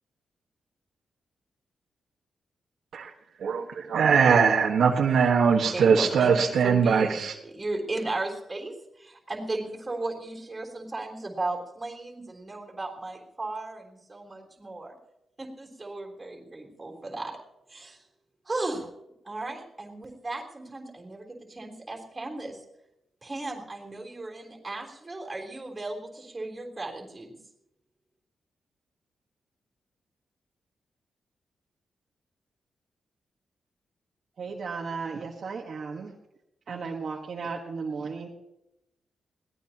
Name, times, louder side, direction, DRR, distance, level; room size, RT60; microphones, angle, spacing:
voice 1, 3.4-7.3, right 6 dB, 75° right, 0 dB, 1.5 m, -21 dB
voice 2, 5.5-15.0 15.4-17.4 17.7-18.0 18.5-18.9 19.2-22.6 23.2-27.4, right 2 dB, 20° right, -1 dB, 3.6 m, -36 dB
voice 3, 34.4-36.1 36.7-38.3, right 4 dB, 50° right, -1 dB, 1.5 m, -35 dB
21.5 x 17.0 x 2.9 m, 0.88 s
wide cardioid pair, 140°, 0 cm